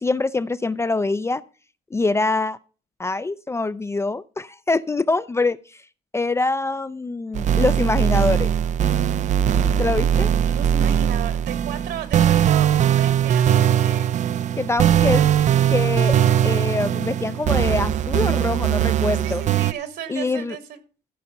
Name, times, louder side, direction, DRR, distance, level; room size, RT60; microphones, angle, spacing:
voice 1, 0.0-1.4 1.9-2.6 3.0-5.6 6.1-8.5 9.8-10.3 14.6-15.3 15.7-16.1 16.4-19.4 20.1-20.6, left 3 dB, 15° left, 0.4 m, -24 dB
sound 1, 7.3-19.7, right 9 dB, 45° right, 0.4 m, -20 dB
voice 2, 10.5-14.2 14.7-15.1 18.9-20.8, right 8 dB, 75° right, 2.5 m, -35 dB
15.0 x 5.7 x 5.2 m
cardioid pair, 110°, 17 cm